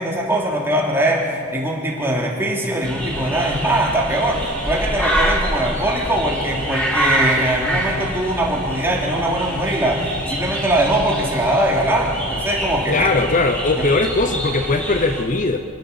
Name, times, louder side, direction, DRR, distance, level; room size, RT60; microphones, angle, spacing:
voice 1, 0.0-13.2 13.8-13.9, right 1 dB, 10° right, -2 dB, 3.3 m, -21 dB
sound 1, 2.8-15.2, right 1 dB, 5° left, 3.3 m, -26 dB
voice 2, 12.9-15.6, left 3 dB, 35° left, 7 dB, 0.8 m, -19 dB
25.5 x 15.5 x 7.0 m, 2.5 s
head